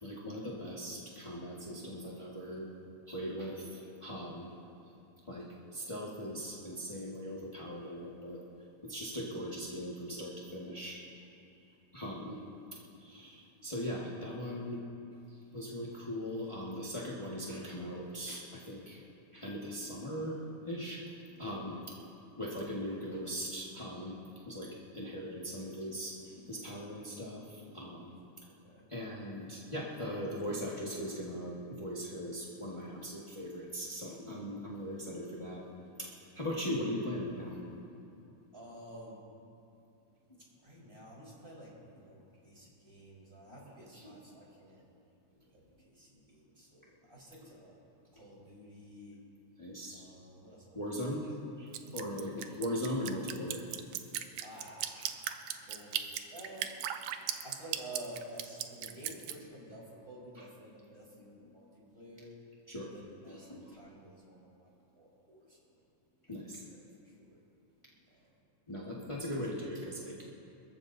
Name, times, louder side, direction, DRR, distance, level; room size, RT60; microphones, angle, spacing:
voice 1, 0.0-2.7 3.1-4.5 5.3-5.5 5.7-8.4 8.9-11.0 11.9-12.4 13.0-14.8 15.5-19.0 19.3-20.4 20.7-21.0 21.3-21.8 22.4-24.2 24.4-26.1 26.5-28.1 28.9-35.6 36.0-37.6 43.9-44.2 49.6-50.0 50.7-51.3 51.6-53.7 62.7-62.9 63.3-63.7 66.3-66.6 68.7-70.2, equal, 30° left, -6 dB, 0.5 m, -39 dB
voice 2, 38.5-39.2 40.6-44.8 45.5-47.8 48.1-49.2 49.9-50.8 51.8-52.0 54.4-56.7 57.4-62.3 62.9-65.7 66.7-67.4 68.1-68.3 69.4-69.5, right 1 dB, 20° right, -5 dB, 4.2 m, -51 dB
Drip, 51.7-59.3, right 11 dB, 80° right, 2.1 m, -37 dB
26.5 x 14.5 x 2.7 m, 2.7 s
omnidirectional pair, 3.6 m